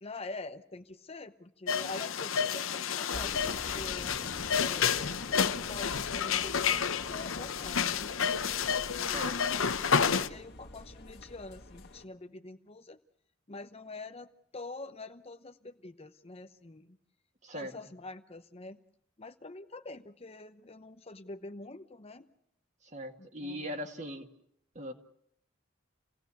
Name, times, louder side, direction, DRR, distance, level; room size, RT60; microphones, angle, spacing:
voice 1, 0.0-4.1 4.6-5.2 5.7-8.1 8.9-13.0 13.5-17.0 17.5-18.8 19.2-22.3 23.2-23.8, left 2 dB, 30° left, 9 dB, 0.8 m, -45 dB
sound 1, 1.7-10.3, left 7 dB, 80° left, 0.9 m, -30 dB
sound 2, 3.1-12.0, left 1 dB, 50° left, 2.0 m, -46 dB
voice 2, 9.0-9.4 17.4-17.7 22.8-24.3 24.8-24.9, equal, 35° right, 5 dB, 1.9 m, -40 dB
28.5 x 17.0 x 8.4 m, 0.76 s
head